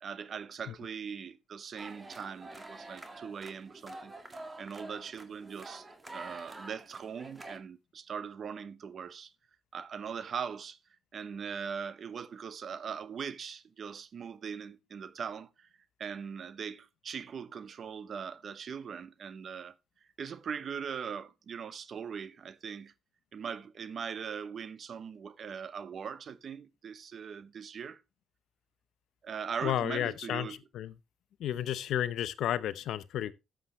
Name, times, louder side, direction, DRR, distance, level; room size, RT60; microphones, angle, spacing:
voice 1, 0.0-9.3 9.7-10.8 11.1-15.7 16.0-19.8 20.2-22.9 23.3-28.0 29.2-30.6, right 7 dB, 55° right, 0.9 m, -40 dB
sound 1, 1.8-7.6, right 2 dB, 20° right, 1.9 m, -47 dB
voice 2, 29.6-30.9 31.4-33.3, left 11 dB, 80° left, 0.8 m, -32 dB
13.0 x 7.7 x 3.2 m
cardioid pair, 90°, 0 cm